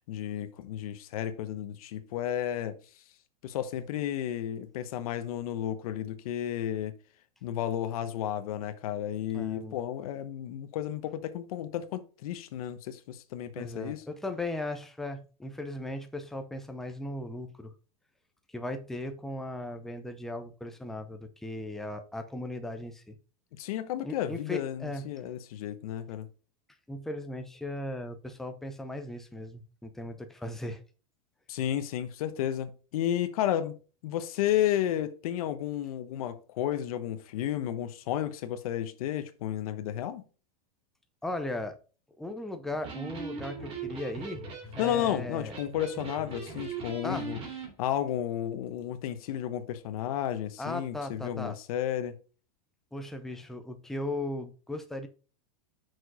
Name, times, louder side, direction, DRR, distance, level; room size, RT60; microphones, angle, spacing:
voice 1, 0.1-2.8 3.4-6.9 7.4-14.0 23.5-26.3 31.5-33.7 34.0-40.2 44.8-47.4 47.8-52.2, left 11 dB, 65° left, 1.0 m, -32 dB
voice 2, 9.3-9.8 13.6-17.7 18.5-23.2 24.0-25.0 26.9-30.8 41.2-41.8 42.2-44.4 44.8-45.5 47.0-47.3 50.6-51.5 52.9-55.1, left 1 dB, ahead, 0.6 m, -37 dB
Electric guitar, 42.7-47.7, right 5 dB, 30° right, 2.4 m, -40 dB
6.1 x 4.8 x 4.8 m
supercardioid pair, 170°, 20 cm